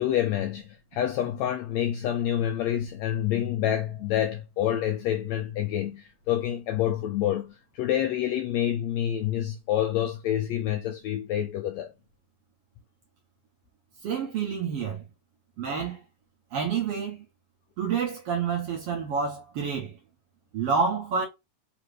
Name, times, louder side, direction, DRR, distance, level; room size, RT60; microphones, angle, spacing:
voice 1, 0.0-11.9, left 11 dB, 90° left, 1.6 m, -27 dB
voice 2, 14.0-15.0 15.6-16.0 16.5-17.2 17.8-19.9 20.5-21.3, right 6 dB, 65° right, 1.6 m, -28 dB
5.0 x 2.9 x 3.1 m
omnidirectional pair, 3.7 m